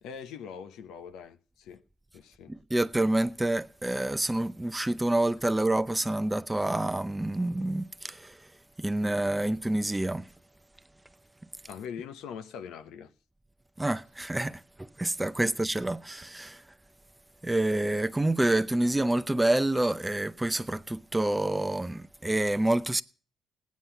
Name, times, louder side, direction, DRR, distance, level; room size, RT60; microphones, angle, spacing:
voice 1, 0.0-1.8 2.1-2.6 11.7-13.1 15.4-15.5, left 7 dB, 90° left, 0.8 m, -42 dB
voice 2, 2.5-8.5 8.8-10.3 13.8-16.6 17.4-23.0, right 1 dB, 10° right, 0.6 m, -28 dB
17.0 x 9.5 x 5.7 m
cardioid pair, 90°, 0 cm